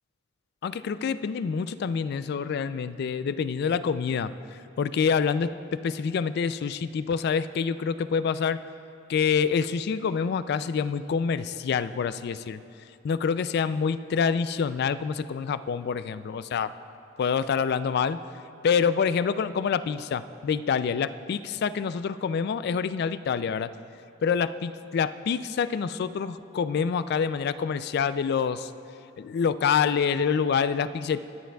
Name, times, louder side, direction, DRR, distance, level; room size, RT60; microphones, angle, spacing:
voice 1, 0.6-4.3 4.8-8.6 9.1-12.6 13.0-16.7 17.2-18.2 18.6-23.7 24.2-28.7 29.2-31.2, left 6 dB, 55° left, 14 dB, 0.3 m, -26 dB
21.5 x 10.0 x 2.3 m, 2.7 s
head